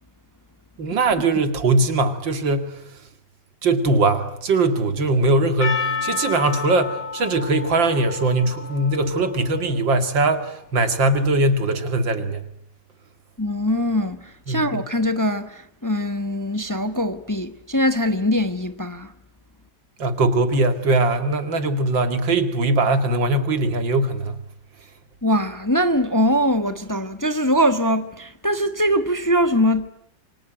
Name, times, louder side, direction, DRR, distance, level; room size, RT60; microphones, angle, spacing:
voice 1, 0.8-2.8 3.6-12.4 14.5-14.8 20.0-24.4, right 2 dB, 90° right, 2.9 m, -21 dB
Percussion, 5.6-10.1, left 5 dB, 35° left, 1.3 m, -31 dB
voice 2, 13.4-19.1 25.2-29.9, equal, 15° left, 1.0 m, -22 dB
27.5 x 24.0 x 9.1 m
omnidirectional pair, 2.0 m